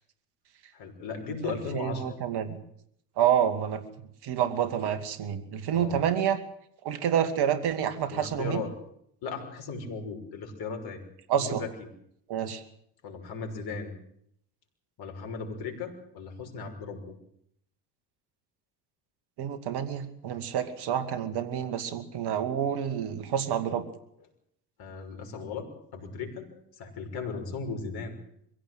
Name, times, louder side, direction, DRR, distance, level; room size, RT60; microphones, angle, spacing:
voice 1, 0.7-2.2 5.7-6.0 8.1-8.7 9.2-11.0 11.3-11.7 13.0-13.9 15.0-17.1 24.8-28.2, left 4 dB, 55° left, 4 dB, 6.1 m, -37 dB
voice 2, 1.5-2.6 3.2-3.8 4.2-6.4 6.8-8.6 11.3-11.6 12.3-12.6 19.4-23.9, right 9 dB, 55° right, 11 dB, 2.5 m, -28 dB
23.0 x 16.5 x 8.0 m, 0.70 s
hypercardioid pair, 70°, 46 cm